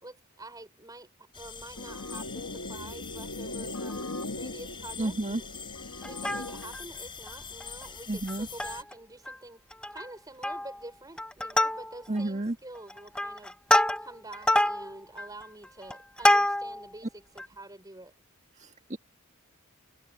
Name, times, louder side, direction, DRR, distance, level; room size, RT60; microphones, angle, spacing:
voice 1, 0.0-1.1 1.4-5.5 6.0-9.6 9.9-13.6 14.0-18.1, right 2 dB, 15° right, 5.7 m, -47 dB
sound 1, 1.3-8.8, left 6 dB, 25° left, 5.1 m, -44 dB
sound 2, 1.8-6.8, left 2 dB, 80° left, 2.0 m, -39 dB
voice 2, 5.0-5.4 8.1-8.5 12.1-12.6 18.6-19.0, right 2 dB, 35° right, 1.7 m, -31 dB
Plucked string instrument, 6.0-6.8 7.3-7.4 7.6-7.8 8.3-8.9 9.3-9.4 9.7-10.1 10.4-10.8 11.2-12.2 12.8-16.9 17.4-17.5, left 1 dB, 5° left, 0.9 m, -26 dB
head